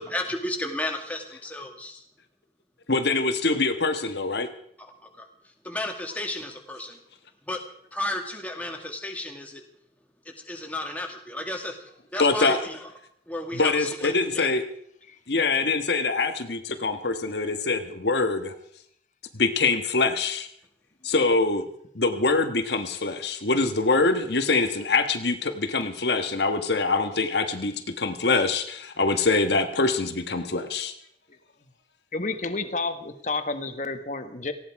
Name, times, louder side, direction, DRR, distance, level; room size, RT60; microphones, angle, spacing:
voice 1, 0.0-2.0 5.0-5.3 5.6-7.0 7.5-7.6 7.9-9.6 10.4-11.8 12.1-12.9 13.3-14.5 21.1-21.2, left 1 dB, 10° left, 3 dB, 2.1 m, -33 dB
voice 2, 2.9-4.5 12.1-12.6 13.5-14.6 15.3-18.5 19.3-20.5 21.0-21.6 21.9-30.9, left 3 dB, 70° left, 7 dB, 1.5 m, -24 dB
voice 3, 32.1-34.5, left 3 dB, 45° left, 8 dB, 1.5 m, -30 dB
18.5 x 16.0 x 4.8 m, 0.70 s
head